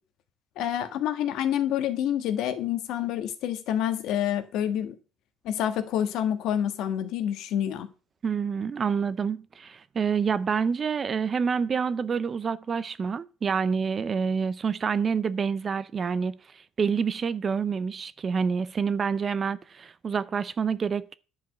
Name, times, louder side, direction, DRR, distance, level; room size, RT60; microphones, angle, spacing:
voice 1, 0.6-4.9 5.4-7.9, left 10 dB, 70° left, 1.5 m, -28 dB
voice 2, 8.2-16.4 16.8-21.1, right 6 dB, 30° right, 0.6 m, -27 dB
10.5 x 4.9 x 7.7 m
cardioid pair, 120°, 0 cm